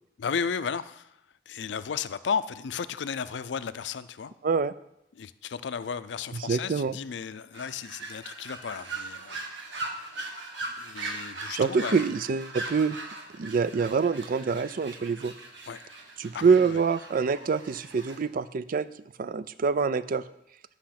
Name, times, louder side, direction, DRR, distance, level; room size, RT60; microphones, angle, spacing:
voice 1, 0.2-1.2 1.5-4.3 5.1-9.4 10.8-12.0 15.7-15.8 16.3-16.8, left 6 dB, 75° left, 14 dB, 0.4 m, -34 dB
voice 2, 6.4-7.0 11.5-13.0 13.4-15.3 16.2-18.9 19.2-20.2, right 5 dB, 50° right, 16 dB, 0.4 m, -25 dB
sound 1, 7.5-18.2, right 2 dB, 90° right, 1.5 m, -40 dB
10.5 x 5.8 x 5.8 m, 0.80 s
head